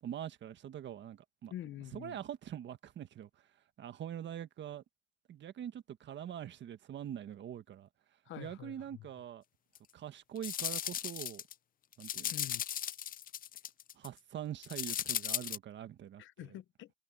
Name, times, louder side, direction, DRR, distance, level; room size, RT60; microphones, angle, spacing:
voice 1, 0.0-1.5 1.9-3.3 3.8-4.8 5.3-7.9 8.4-9.4 9.9-11.4 12.0-12.3 13.9-16.6, right 10 dB, 65° right, 1.6 m, -44 dB
voice 2, 1.5-2.2 8.3-9.0 12.3-12.6 16.2-16.9, left 13 dB, 75° left, 0.8 m, -46 dB
sound 1, 9.7-9.8 10.4-11.5 11.9-14.1 14.6-15.6, left 10 dB, 45° left, 0.4 m, -37 dB
cardioid pair, 90°, 20 cm